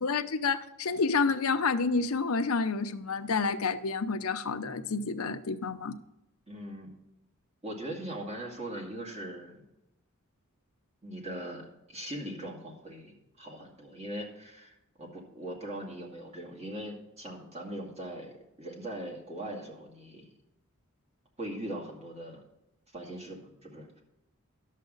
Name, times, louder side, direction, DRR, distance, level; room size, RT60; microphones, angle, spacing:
voice 1, 0.0-5.9, left 4 dB, 75° left, 8 dB, 0.7 m, -29 dB
voice 2, 6.5-6.9 7.6-9.6 11.0-20.3 21.4-22.5 22.9-24.0, right 1 dB, 30° right, -1 dB, 2.2 m, -40 dB
11.5 x 7.5 x 3.9 m, 0.91 s
head